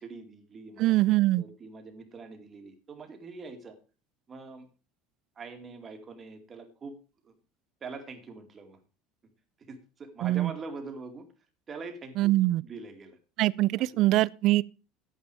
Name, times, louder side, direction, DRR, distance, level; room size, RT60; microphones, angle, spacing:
voice 1, 0.0-0.9 1.4-3.7 4.3-4.7 5.4-6.9 7.2-7.3 7.8-8.8 9.6-11.3 11.7-12.3 12.6-13.2 13.8-14.1, right 4 dB, 25° right, 2.3 m, -43 dB
voice 2, 0.8-1.4 10.2-10.5 12.2-12.6 13.4-14.6, right 17 dB, 55° right, 0.4 m, -23 dB
10.0 x 9.0 x 4.8 m
cardioid pair, 140°, 0 cm